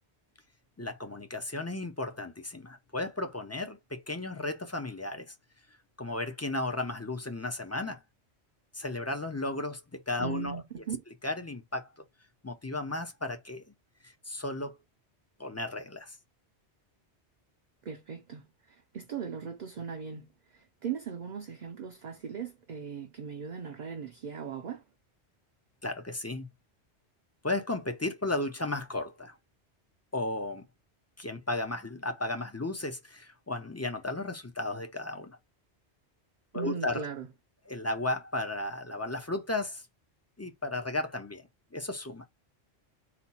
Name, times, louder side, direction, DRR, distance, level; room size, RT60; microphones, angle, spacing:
voice 1, 0.8-5.3 6.0-8.0 8.7-10.6 11.2-11.9 12.4-13.6 14.0-14.8 15.4-16.2 25.8-26.5 27.4-29.4 30.1-30.6 31.2-35.4 36.5-37.0 37.7-39.8 40.4-41.4 41.7-42.3, left 2 dB, 20° left, 0.4 m, -34 dB
voice 2, 10.2-11.0 17.8-24.8 36.5-37.3, right 7 dB, 50° right, 0.6 m, -39 dB
4.2 x 2.3 x 4.1 m
omnidirectional pair, 1.2 m